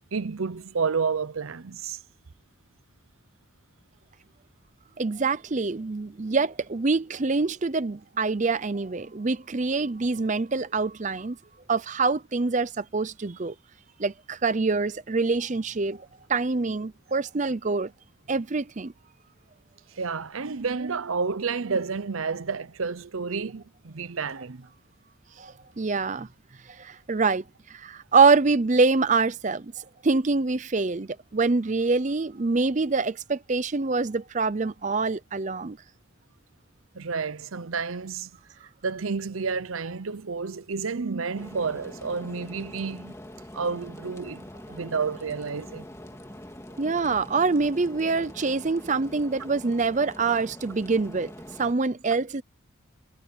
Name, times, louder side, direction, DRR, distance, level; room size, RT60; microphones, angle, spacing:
voice 1, 0.1-2.0 19.9-24.7 36.9-38.3 38.8-43.2 43.5-45.9, right 5 dB, 75° right, 0.8 m, -30 dB
voice 2, 5.0-11.4 11.7-13.5 14.0-17.9 18.3-18.9 25.4-26.3 26.8-27.4 27.7-35.8 46.8-51.3 51.6-52.4, right 4 dB, 35° right, 0.6 m, -25 dB
sound 1, 41.4-51.7, left 1 dB, 15° left, 2.3 m, -44 dB
head